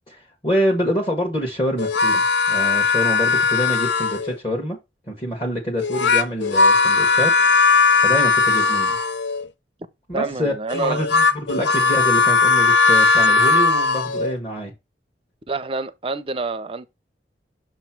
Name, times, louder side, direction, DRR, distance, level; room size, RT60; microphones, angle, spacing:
voice 1, 0.1-4.8 5.1-7.6 8.0-9.0 10.1-14.7, equal, 25° left, 1.3 m, -26 dB
sound 1, 1.8-4.4 5.8-9.5 10.7-14.3, left 4 dB, 80° left, 0.6 m, -18 dB
voice 2, 10.1-11.0 15.5-16.9, right 3 dB, 30° right, 0.6 m, -27 dB
6.6 x 3.1 x 5.8 m
head